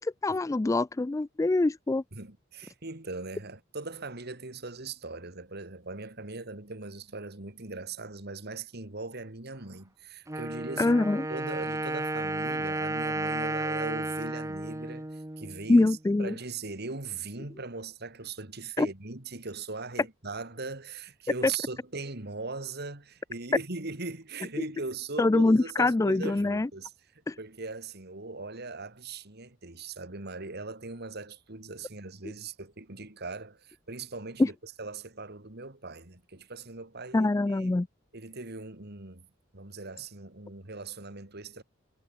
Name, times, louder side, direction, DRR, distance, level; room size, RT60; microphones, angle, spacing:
voice 1, 0.0-2.0 10.8-11.3 15.7-16.3 18.8-18.9 25.2-26.7 27.3-27.4 34.4-34.5 37.1-37.9, left 2 dB, 15° left, 0.3 m, -24 dB
voice 2, 2.1-11.0 11.3-15.9 16.2-26.9 27.4-37.8 38.1-39.3 39.5-41.6, right 3 dB, 55° right, 2.7 m, -40 dB
Wind instrument woodwind instrument, 10.3-16.0, right 2 dB, 15° right, 1.2 m, -33 dB
head